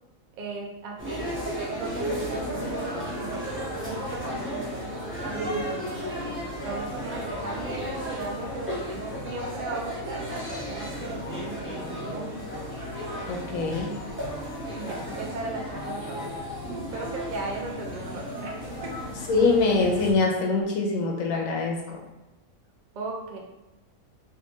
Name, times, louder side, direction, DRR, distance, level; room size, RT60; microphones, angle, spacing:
voice 1, 0.3-1.3 1.7-5.6 6.6-12.3 14.7-16.3 16.9-19.0 22.9-23.4, right 3 dB, 55° right, 0 dB, 0.5 m, -37 dB
sound 1, 1.0-20.1, equal, 10° right, 0.6 m, -34 dB
voice 2, 13.3-13.9 19.3-21.8, left 3 dB, 75° left, 1 dB, 1.1 m, -23 dB
3.5 x 2.5 x 2.9 m, 1.0 s
omnidirectional pair, 1.4 m